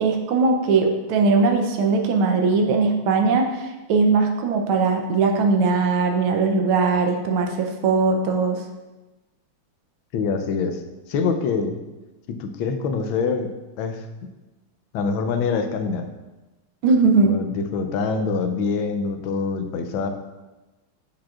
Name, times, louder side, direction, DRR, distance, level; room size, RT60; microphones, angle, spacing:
voice 1, 0.0-8.6 16.8-17.4, right 4 dB, 85° right, 4 dB, 1.6 m, -20 dB
voice 2, 10.1-10.8 11.1-11.8 12.3-13.5 13.8-14.1 14.9-16.1 17.2-20.1, left 5 dB, 75° left, 7 dB, 1.4 m, -25 dB
7.5 x 6.6 x 2.4 m, 1.1 s
omnidirectional pair, 2.3 m